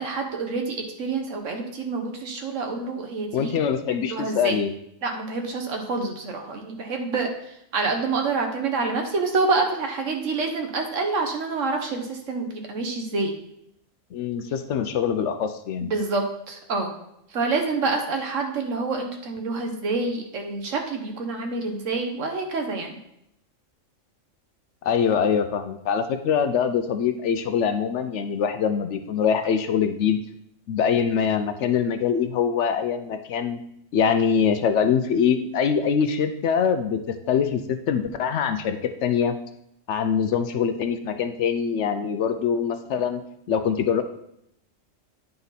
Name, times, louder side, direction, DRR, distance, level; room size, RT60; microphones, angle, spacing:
voice 1, 0.0-3.6 4.1-4.5 5.0-7.3 7.7-13.3 15.8-16.9 17.3-23.0, right 3 dB, 70° right, 3 dB, 1.4 m, -27 dB
voice 2, 3.3-4.7 14.1-15.9 24.8-30.2 30.7-33.6 33.9-37.6 37.9-39.3 39.9-43.2 43.5-44.0, left 7 dB, 70° left, 9 dB, 0.8 m, -23 dB
9.5 x 4.0 x 4.1 m, 0.78 s
omnidirectional pair, 1.4 m